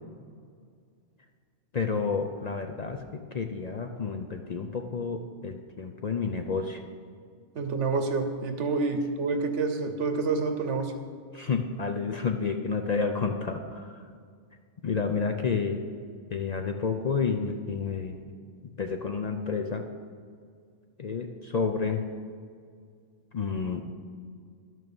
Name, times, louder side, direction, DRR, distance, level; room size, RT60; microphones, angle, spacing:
voice 1, 1.7-3.0 3.3-6.8 11.3-14.0 14.8-15.8 16.3-18.2 18.8-19.8 21.0-22.0 23.3-23.8, left 5 dB, 50° left, 5 dB, 0.5 m, -30 dB
voice 2, 7.5-10.9, right 4 dB, 80° right, 7 dB, 1.2 m, -28 dB
11.0 x 6.3 x 6.9 m, 2.1 s
omnidirectional pair, 1.2 m